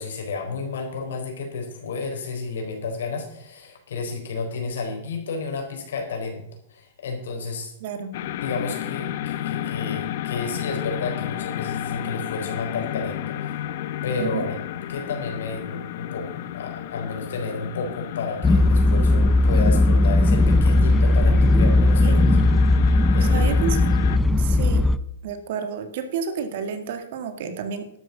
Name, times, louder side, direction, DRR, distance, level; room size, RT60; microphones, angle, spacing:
voice 1, 0.0-6.4 6.7-7.7 8.4-13.6 14.0-14.6 14.9-22.3 23.1-23.6, left 4 dB, 85° left, 3 dB, 4.1 m, -31 dB
voice 2, 7.8-8.1 14.2-14.5 22.0-22.4 23.2-23.8 24.4-24.9 25.2-27.9, right 6 dB, 60° right, 8 dB, 2.0 m, -30 dB
sound 1, 8.1-24.2, left 12 dB, 55° left, 0.7 m, -32 dB
sound 2, 18.4-25.0, left 2 dB, 10° left, 0.5 m, -17 dB
12.0 x 8.0 x 6.9 m, 0.74 s
hypercardioid pair, 150°, 0 cm